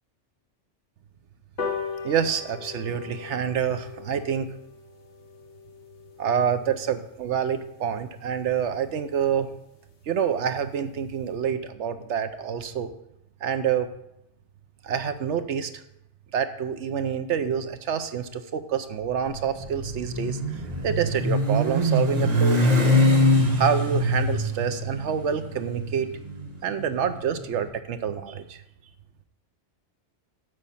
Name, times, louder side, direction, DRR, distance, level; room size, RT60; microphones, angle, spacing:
sound 1, 1.6-8.3 8.8-8.9 9.2-9.3 9.6-9.7 9.9-10.0 10.3-10.6 11.0-11.1, left 5 dB, 65° left, 1.4 m, -39 dB
voice 1, 2.0-4.5 6.2-9.5 10.1-12.9 13.4-13.9 14.8-15.7 16.3-22.9 23.6-26.1 26.6-28.6, right 7 dB, 75° right, 10 dB, 1.0 m, -27 dB
Motorcycle, 19.3-27.5, equal, 35° right, 1.0 m, -23 dB
8.2 x 5.2 x 7.1 m, 0.82 s
omnidirectional pair, 1.2 m